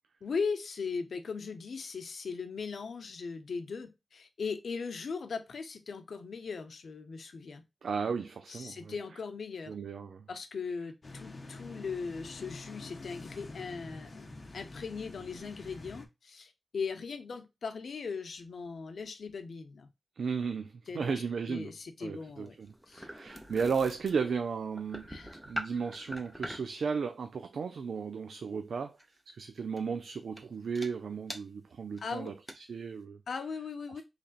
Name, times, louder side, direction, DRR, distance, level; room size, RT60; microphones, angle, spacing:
voice 1, 0.2-7.6 8.5-9.7 10.3-19.9 20.9-22.6 22.9-23.1 25.1-25.4 32.0-32.3 33.3-34.0, left 5 dB, 75° left, 0.6 m, -39 dB
voice 2, 7.8-8.9 9.7-10.3 20.2-21.7 22.0-25.1 25.4-29.0 29.3-32.3 32.7-33.2, right 5 dB, 85° right, 0.4 m, -34 dB
sound 1, 11.0-16.1, left 2 dB, 40° left, 0.8 m, -47 dB
sound 2, 22.2-26.8 29.0-29.2 29.8-30.0 30.4-30.5 30.7-30.9 31.3-31.4 32.0-32.1 32.3-32.5, equal, 5° right, 0.7 m, -43 dB
3.9 x 3.2 x 2.4 m
wide cardioid pair, 135°, 0 cm